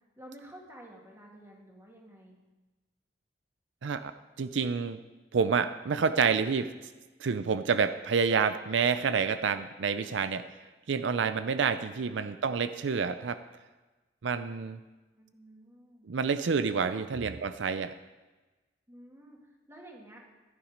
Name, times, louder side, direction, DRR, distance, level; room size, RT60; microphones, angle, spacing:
voice 1, 0.2-2.4 15.1-16.1 16.8-17.0 18.9-20.2, right 1 dB, 15° right, -1 dB, 2.3 m, -51 dB
voice 2, 4.4-5.0 5.3-6.7 7.2-10.5 10.9-13.4 14.2-14.8 16.1-17.9, right 5 dB, 85° right, 12 dB, 0.5 m, -28 dB
14.5 x 10.0 x 5.1 m, 1.2 s
head